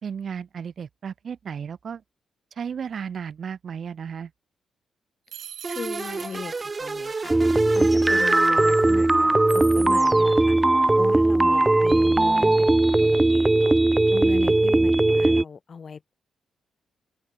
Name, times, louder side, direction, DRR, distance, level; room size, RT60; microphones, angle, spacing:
voice 1, 0.0-2.0 2.6-4.3, right 7 dB, 60° right, 2.0 m, -34 dB
sound 1, 5.3-7.0, right 10 dB, 75° right, 1.0 m, -41 dB
sound 2, 5.6-9.2, right 4 dB, 35° right, 2.4 m, -33 dB
voice 2, 5.7-6.5 6.8-7.4 7.7-10.6 11.0-13.8 14.1-16.1, left 5 dB, 50° left, 4.3 m, -37 dB
sound 3, 7.3-15.4, right 2 dB, 20° right, 0.8 m, -19 dB
open air
supercardioid pair, 60°, 0 cm